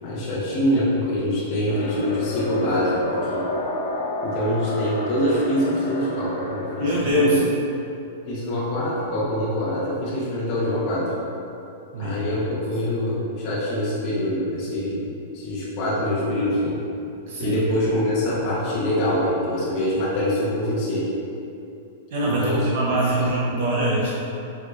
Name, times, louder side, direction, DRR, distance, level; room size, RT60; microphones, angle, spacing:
voice 1, 0.0-3.4 4.2-7.4 8.3-11.0 12.0-15.0 15.3-16.8 17.4-21.1 22.2-22.6 23.2-23.3, left 1 dB, 30° left, -9 dB, 0.8 m, -24 dB
sound 1, 1.7-7.0, left 1 dB, 80° left, 0.6 m, -30 dB
voice 2, 6.8-7.4 11.9-12.2 17.3-17.6 22.1-24.1, right 1 dB, 60° right, -6 dB, 0.6 m, -23 dB
4.4 x 2.5 x 2.3 m, 2.7 s
supercardioid pair, 175°, 0 cm